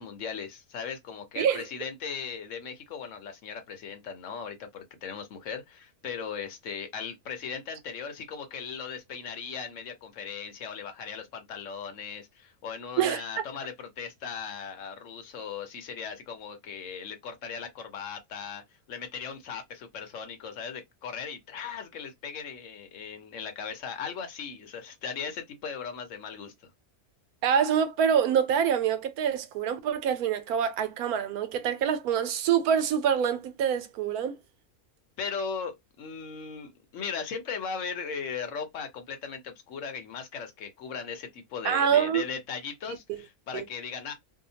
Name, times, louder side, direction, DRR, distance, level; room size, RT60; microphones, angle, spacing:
voice 1, 0.0-18.6 18.9-26.5 35.2-44.1, left 6 dB, 60° left, 1.0 m, -38 dB
voice 2, 27.4-34.4 41.6-42.2 43.1-43.2 43.5-43.6, right 8 dB, 80° right, 1.1 m, -25 dB
2.7 x 2.2 x 2.7 m
omnidirectional pair, 1.5 m